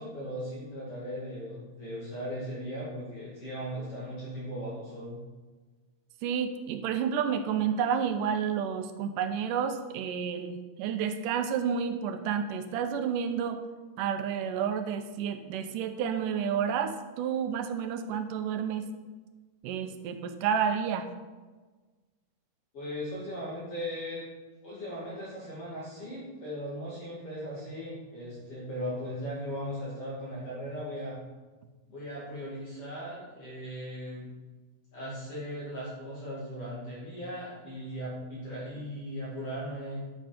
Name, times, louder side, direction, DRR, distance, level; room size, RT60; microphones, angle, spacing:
voice 1, 0.0-5.2 22.7-24.2 24.6-31.2 31.9-34.3 34.9-40.0, equal, 45° left, -7 dB, 3.2 m, -38 dB
voice 2, 6.2-13.6 14.0-18.9 19.6-21.1, right 7 dB, 85° right, 7 dB, 2.3 m, -30 dB
12.0 x 6.4 x 5.1 m, 1.3 s
omnidirectional pair, 3.7 m